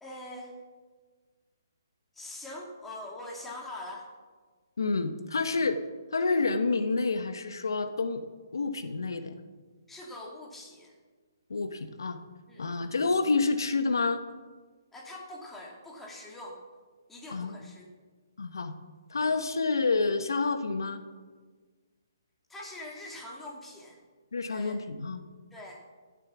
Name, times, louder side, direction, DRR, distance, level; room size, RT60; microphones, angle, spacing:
voice 1, 0.0-0.5 2.1-4.1 9.9-10.9 12.5-12.8 14.9-16.6 17.1-17.9 22.5-24.0 24.5-24.8 25.5-25.8, left 1 dB, 5° left, -2 dB, 2.4 m, -43 dB
voice 2, 4.8-5.8 6.1-8.3 8.5-9.4 11.5-12.2 12.6-14.2 17.3-17.6 18.4-18.7 19.1-21.0 24.3-25.2, left 3 dB, 80° left, 9 dB, 0.9 m, -28 dB
15.5 x 7.3 x 6.0 m, 1.5 s
hypercardioid pair, 145°, 2 cm